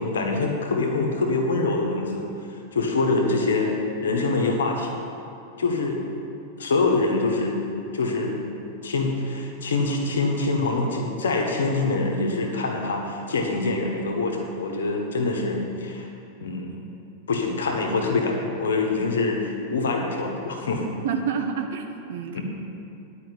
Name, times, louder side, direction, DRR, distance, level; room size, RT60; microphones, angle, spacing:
voice 1, 0.0-3.7 4.0-5.0 5.6-6.0 6.6-7.6 7.9-8.4 8.8-16.1 16.4-16.8 17.3-19.4 19.7-20.8 22.3-22.4, left 3 dB, 65° left, 2 dB, 1.5 m, -25 dB
voice 2, 21.0-22.4, right 6 dB, 55° right, 4 dB, 0.8 m, -28 dB
10.5 x 5.3 x 8.5 m, 2.6 s
figure-of-eight pair, 90°, 0 cm